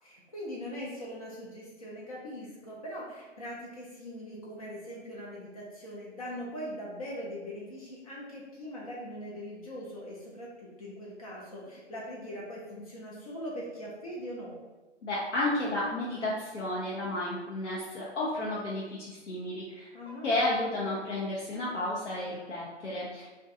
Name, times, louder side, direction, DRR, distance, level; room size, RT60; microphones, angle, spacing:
voice 1, 0.0-14.5 19.9-20.3, equal, 35° left, -5 dB, 0.5 m, -41 dB
voice 2, 15.0-19.9 20.2-23.3, left 1 dB, 90° left, -6 dB, 0.7 m, -32 dB
2.5 x 2.2 x 2.6 m, 1.3 s
hypercardioid pair, 140°, 35 cm